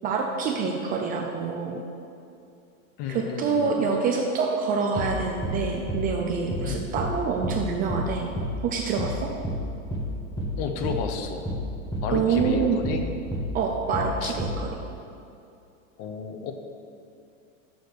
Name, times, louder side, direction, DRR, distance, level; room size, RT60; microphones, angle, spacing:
voice 1, 0.0-1.8 3.1-8.3 8.6-9.3 12.1-12.8 13.5-14.7, right 5 dB, 25° right, 1 dB, 0.4 m, -26 dB
voice 2, 3.0-3.8 6.6-6.9 10.6-11.5 12.0-13.0 14.2-14.3 16.0-16.5, left 6 dB, 40° left, 6 dB, 0.8 m, -32 dB
sound 1, 5.0-5.2 5.4-5.6 5.9-6.1 6.5-6.7 7.0-7.2 7.4-7.6 7.9-8.1 8.4-8.6 9.0-9.2 9.4-9.6 9.9-10.1 10.4-10.6 10.8-11.0 11.5-11.7 11.9-12.1 12.4-12.6 12.8-13.0 13.3-13.5 13.9-14.1 14.4-14.6, equal, 10° left, 0.9 m, -30 dB
6.4 x 4.9 x 6.7 m, 2.6 s
supercardioid pair, 135°, 39 cm